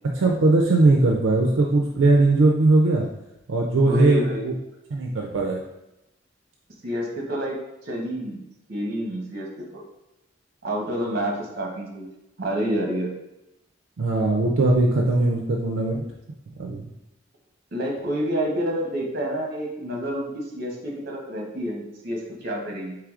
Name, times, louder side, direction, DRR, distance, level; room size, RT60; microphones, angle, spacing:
voice 1, 0.1-3.1 3.5-4.5 4.9-5.6 14.0-16.0 16.6-16.9, right 2 dB, 75° right, 0 dB, 0.4 m, -20 dB
voice 2, 3.9-4.5 6.8-9.8 10.6-12.1 12.4-13.1 17.7-23.0, equal, 50° right, -1 dB, 0.9 m, -29 dB
4.7 x 3.3 x 2.4 m, 0.90 s
head